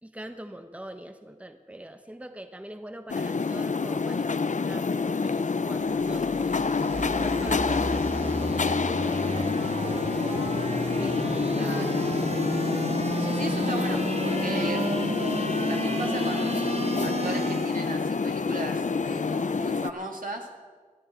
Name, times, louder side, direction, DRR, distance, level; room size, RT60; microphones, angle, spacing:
voice 1, 0.0-6.3 7.2-8.5 8.9-9.6 10.8-11.3, right 1 dB, 10° right, 8 dB, 0.9 m, -43 dB
sound 1, 3.1-19.9, left 4 dB, 65° left, 0.4 m, -27 dB
sound 2, 5.7-17.9, right 2 dB, 50° right, 0.9 m, -32 dB
voice 2, 11.6-11.9 13.2-16.6 17.0-20.5, right 2 dB, 80° right, 1 dB, 2.0 m, -37 dB
19.0 x 13.0 x 4.4 m, 1.5 s
wide cardioid pair, 45°, 14 cm